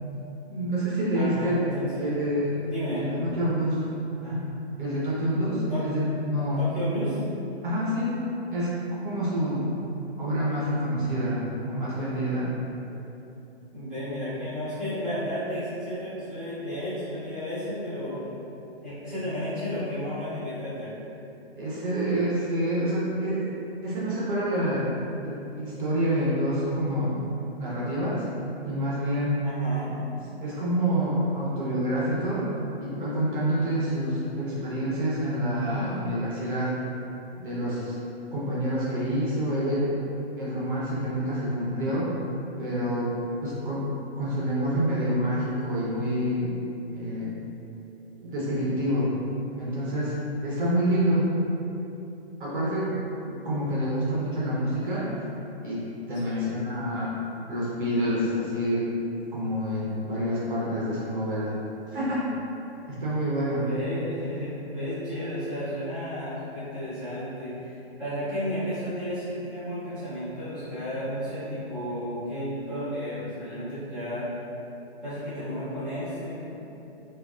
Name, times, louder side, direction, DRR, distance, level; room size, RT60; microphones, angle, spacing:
voice 1, 0.5-1.6 2.0-2.6 2.9-3.8 4.2-4.5 4.8-6.6 7.6-8.2 8.5-8.8 9.0-9.7 10.2-12.5 21.6-23.5 23.8-24.9 25.2-27.2 27.6-28.3 28.6-29.4 30.4-32.5 32.8-36.7 37.4-37.9 38.3-39.9 40.4-42.1 42.6-43.1 43.4-43.9 44.2-46.5 46.9-47.4 48.2-49.1 49.6-51.3 52.4-52.9 53.4-55.1 55.6-57.2 57.5-58.9 59.3-61.6 61.9-62.2 62.9-63.7, equal, 50° right, -8 dB, 0.9 m, -27 dB
voice 2, 1.1-2.3 2.6-3.1 5.7-5.9 6.6-7.2 13.7-18.4 18.8-20.9 29.4-29.9 53.2-53.4 56.1-56.5 63.5-74.3 75.0-76.4, equal, ahead, -18 dB, 0.4 m, -33 dB
4.4 x 2.4 x 2.3 m, 3.0 s
hypercardioid pair, 150°, 32 cm